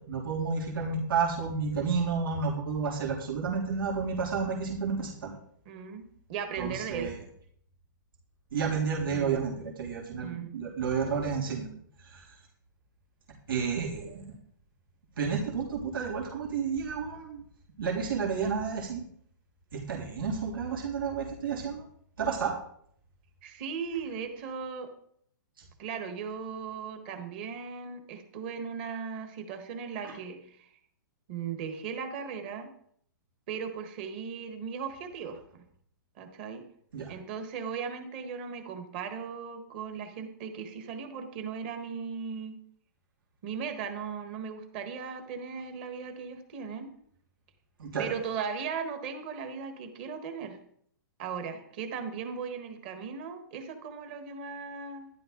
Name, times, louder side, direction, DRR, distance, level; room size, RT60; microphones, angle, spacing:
voice 1, 0.1-5.3 6.6-7.1 8.5-11.7 12.0-12.2 13.5-14.3 15.2-17.4 17.8-19.0 19.7-21.8 22.2-22.5 30.0-30.1 36.9-37.1 47.8-48.1, right 5 dB, 85° right, -2 dB, 3.3 m, -31 dB
voice 2, 5.6-7.2 9.0-9.5 10.2-10.5 23.4-24.9 25.8-30.7 31.3-32.7 33.5-35.6 36.2-36.6 37.1-42.6 43.4-46.9 48.0-50.6 51.2-55.1, right 6 dB, 30° right, 6 dB, 1.6 m, -37 dB
12.5 x 11.5 x 3.9 m, 0.65 s
hypercardioid pair, 175°, 11 cm